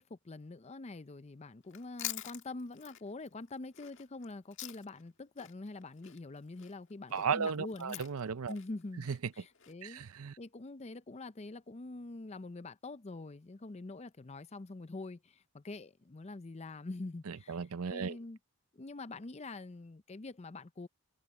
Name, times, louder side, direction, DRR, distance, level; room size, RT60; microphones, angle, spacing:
voice 1, 0.0-8.0 8.5-9.1 9.4-10.0 10.4-17.6 17.9-18.4 18.7-20.9, left 2 dB, 30° left, 0.5 m, -45 dB
Chewing mastication, 1.6-5.1 5.4-9.7, left 13 dB, 60° left, 1.9 m, -46 dB
voice 2, 7.1-8.5 9.1-9.3 9.8-10.4 17.3-18.2, right 6 dB, 80° right, 0.6 m, -35 dB
head